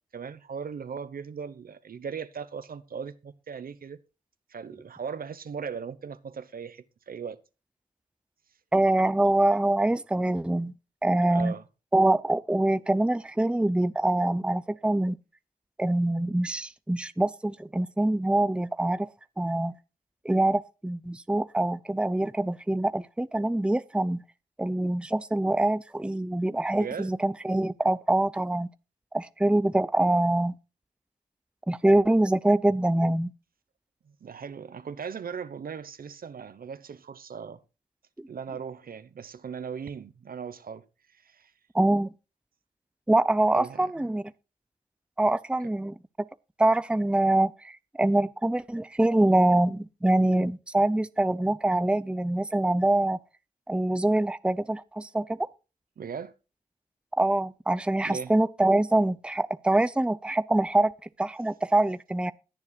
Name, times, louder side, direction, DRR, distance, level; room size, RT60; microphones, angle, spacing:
voice 1, 0.1-4.0 4.5-7.4 11.3-11.6 26.7-27.1 34.0-37.6 38.3-41.5 43.5-44.1 56.0-56.3 58.0-58.3, right 6 dB, 70° right, 1.0 m, -38 dB
voice 2, 8.7-10.7 11.0-11.5 11.9-15.2 15.8-19.1 19.4-19.7 20.2-24.2 24.6-28.7 29.1-30.5 31.7-33.3 41.7-42.1 43.1-44.2 45.2-45.9 46.6-53.2 53.7-55.4 57.2-60.9 61.2-62.3, right 1 dB, 5° right, 0.6 m, -24 dB
20.5 x 7.2 x 2.3 m
cardioid pair, 50°, 16 cm